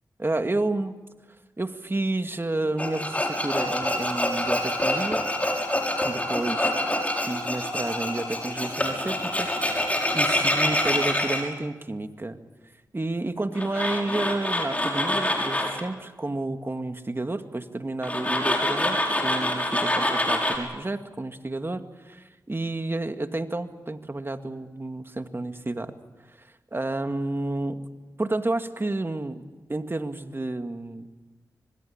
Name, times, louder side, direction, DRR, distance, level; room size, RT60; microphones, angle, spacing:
voice 1, 0.2-1.0 1.6-5.2 6.0-6.7 7.3-9.9 10.1-12.4 12.9-25.9 26.4-27.8 28.2-31.1, right 2 dB, 30° right, 7 dB, 2.1 m, -30 dB
Tools, 2.8-11.4 13.5-15.8 18.0-20.6, left 1 dB, 20° left, 6.7 m, -26 dB
25.5 x 20.5 x 8.8 m, 1.2 s
cardioid pair, 40°, 7 cm